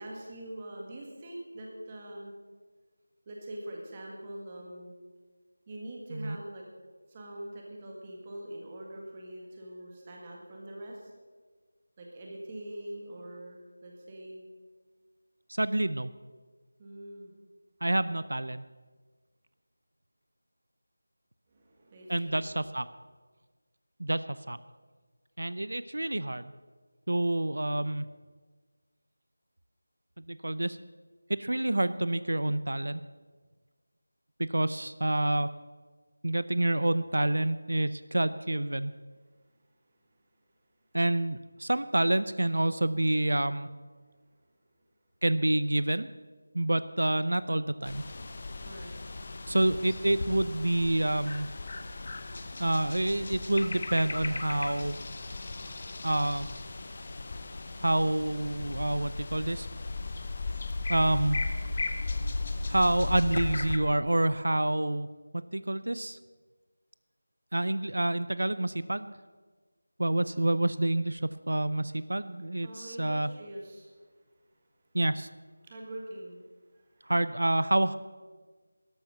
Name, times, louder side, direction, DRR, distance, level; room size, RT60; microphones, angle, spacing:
voice 1, 0.0-2.3 3.2-4.9 5.7-6.7 7.1-11.1 12.0-14.4 16.8-17.3 21.5-22.6 48.3-49.3 72.6-74.1 75.6-77.1, right 1 dB, 15° right, -1 dB, 1.7 m, -44 dB
voice 2, 15.5-16.1 17.8-18.6 22.1-22.9 24.0-24.6 25.4-26.5 27.1-28.0 30.2-30.8 31.3-33.0 34.4-35.5 36.2-38.9 40.9-43.7 45.2-46.1 46.5-48.0 49.5-51.5 52.6-55.0 56.0-56.5 57.8-59.7 60.9-61.4 62.7-65.1 65.3-66.2 67.5-69.1 70.0-73.3 74.9-75.3 77.1-78.0, right 1 dB, 85° right, 14 dB, 0.6 m, -28 dB
sound 1, 47.8-63.8, left 3 dB, 25° left, 0.8 m, -36 dB
13.0 x 11.5 x 6.6 m, 1.4 s
figure-of-eight pair, 180°, 0 cm